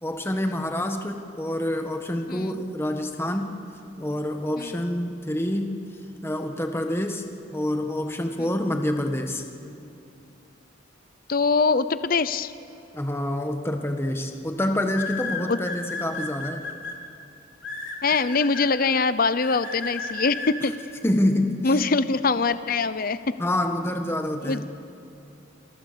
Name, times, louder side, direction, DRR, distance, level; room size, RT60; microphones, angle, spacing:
voice 1, 0.0-3.6 4.0-5.9 6.2-7.2 7.5-9.4 12.9-16.6 21.0-21.8 23.4-24.7, left 1 dB, 10° left, 5 dB, 1.5 m, -27 dB
voice 2, 11.3-12.5 15.4-15.6 18.0-20.7 21.6-23.2 24.4-24.6, left 4 dB, 45° left, 13 dB, 0.7 m, -23 dB
sound 1, 13.4-13.7 14.9-16.9 17.6-18.7 19.4-20.5, left 4 dB, 70° left, 4.0 m, -33 dB
28.5 x 28.0 x 6.9 m, 2.7 s
head